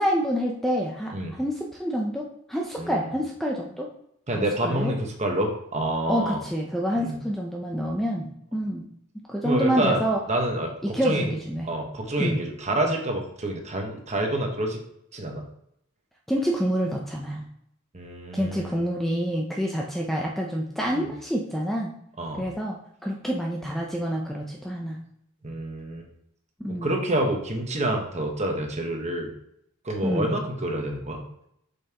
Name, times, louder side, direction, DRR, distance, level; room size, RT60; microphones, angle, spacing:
voice 1, 0.0-1.1 1.4-3.9 4.6-4.9 6.1-8.9 9.3-10.2 10.9-11.7 12.2-12.4 16.3-17.4 18.3-21.9 22.3-22.8 23.0-25.0 26.6-26.9 30.0-30.3, equal, ahead, -1 dB, 0.5 m, -27 dB
voice 2, 4.3-6.4 7.0-7.2 9.4-11.3 11.6-14.8 15.1-15.5 17.9-18.8 20.9-21.1 22.2-22.5 25.4-26.1 26.7-29.3 29.8-31.3, right 1 dB, 30° right, 2 dB, 1.2 m, -28 dB
7.2 x 5.5 x 2.9 m, 0.75 s
head